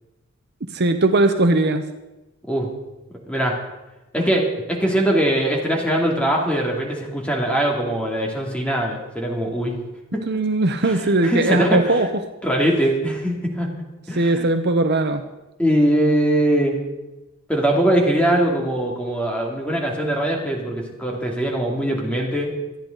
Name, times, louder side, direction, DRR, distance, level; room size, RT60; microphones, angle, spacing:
voice 1, 0.7-1.8 10.3-12.1 14.1-15.2, right 2 dB, 50° right, 7 dB, 0.8 m, -19 dB
voice 2, 3.3-3.6 4.1-9.8 10.1-10.2 10.9-12.0 12.4-13.7 14.1-14.5 15.6-16.8 17.5-22.5, right 1 dB, 5° left, 0 dB, 2.5 m, -21 dB
26.0 x 9.9 x 4.0 m, 1.0 s
head